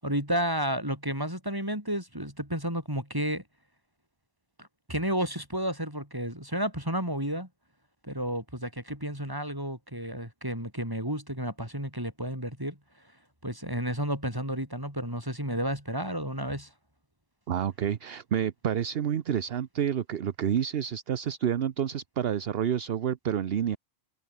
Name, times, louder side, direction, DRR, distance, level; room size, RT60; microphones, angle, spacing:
voice 1, 0.0-3.4 4.6-7.5 8.0-12.8 13.4-16.7, equal, 20° right, 7.2 m, -31 dB
voice 2, 17.5-23.8, right 9 dB, 65° right, 1.0 m, -29 dB
omnidirectional pair, 1.1 m